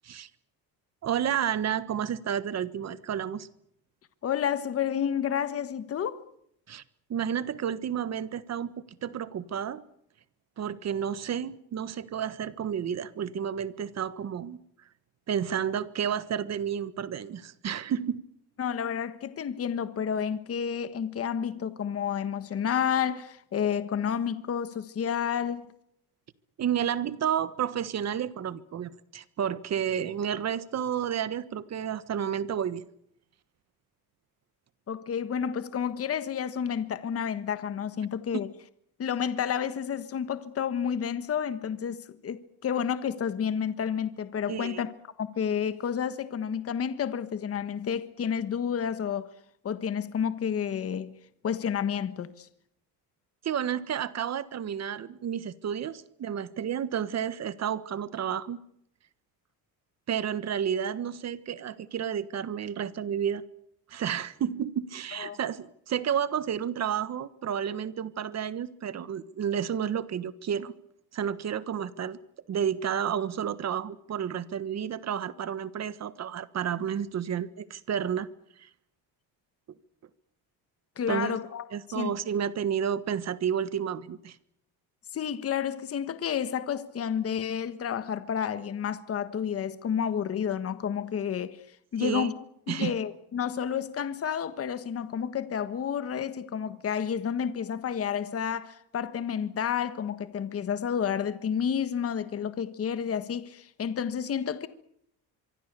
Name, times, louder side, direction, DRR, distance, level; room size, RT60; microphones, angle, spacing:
voice 1, 1.0-3.5 6.7-6.8 7.1-8.7 9.0-9.8 10.6-14.6 15.3-18.2 26.6-32.9 44.5-44.8 53.4-58.6 60.1-63.4 63.9-70.7 71.1-72.2 72.5-78.3 78.6-78.7 81.1-81.4 81.7-84.4 92.0-92.3 92.7-92.9, right 8 dB, 40° right, 1.5 m, -31 dB
voice 2, 4.2-6.2 18.6-25.6 34.9-38.5 39.0-44.9 45.2-49.3 49.6-51.1 51.4-52.5 65.1-65.4 81.0-81.7 81.9-82.1 85.1-91.6 91.9-92.3 92.7-104.7, left 8 dB, 35° left, 1.4 m, -30 dB
25.0 x 24.5 x 6.9 m
cardioid pair, 135°, 39 cm